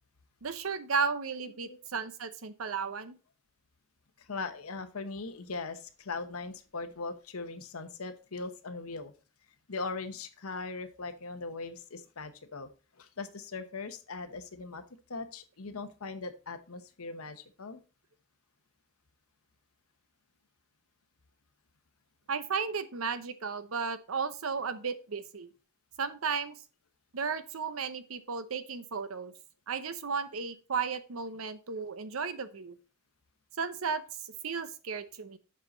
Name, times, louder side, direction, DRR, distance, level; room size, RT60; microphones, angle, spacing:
voice 1, 0.4-3.2 22.3-25.5 26.0-26.6 27.1-29.3 29.7-32.7 33.6-34.0 34.4-35.4, right 5 dB, 75° right, 12 dB, 0.8 m, -34 dB
voice 2, 4.2-9.1 9.7-12.7 13.0-14.8 15.1-17.8, left 3 dB, 85° left, 9 dB, 1.0 m, -40 dB
7.5 x 5.7 x 4.0 m, 0.35 s
head